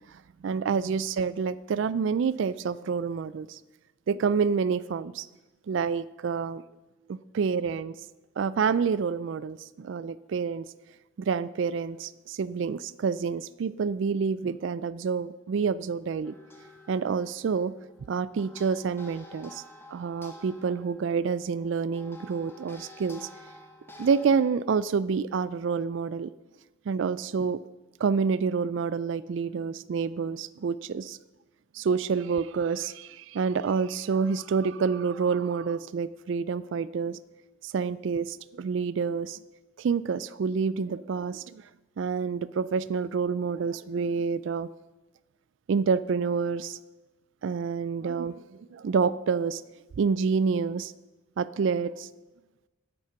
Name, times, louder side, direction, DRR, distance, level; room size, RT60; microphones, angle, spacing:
voice 1, 0.4-3.6 4.1-5.3 5.7-6.6 7.1-8.0 8.4-10.6 11.2-16.3 16.9-17.7 18.1-19.6 19.9-23.3 24.0-26.3 26.9-27.6 28.0-31.2 31.7-37.2 37.6-39.4 39.8-41.6 42.0-44.7 45.7-46.8 47.4-48.4 48.7-49.6 50.0-50.9 51.4-52.1, right 5 dB, 60° right, 17 dB, 0.3 m, -28 dB
sound 1, 16.2-24.5, left 1 dB, 10° left, 1.0 m, -50 dB
9.3 x 8.5 x 5.8 m, 1.1 s
head